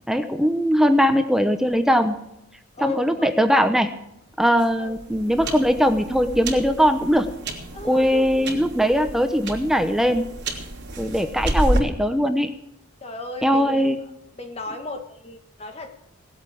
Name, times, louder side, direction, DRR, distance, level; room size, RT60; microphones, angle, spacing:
voice 1, 0.1-2.2 2.8-3.9 4.4-7.3 7.8-10.3 11.0-12.5 13.4-14.0, equal, ahead, 8 dB, 0.9 m, -20 dB
voice 2, 2.7-3.3 4.8-4.9 7.7-8.7 13.0-13.7 14.4-15.9, left 2 dB, 30° left, 5 dB, 1.5 m, -35 dB
sound 1, 4.4-11.8, right 1 dB, 55° right, 3.1 m, -30 dB
18.5 x 8.2 x 8.7 m, 0.82 s
head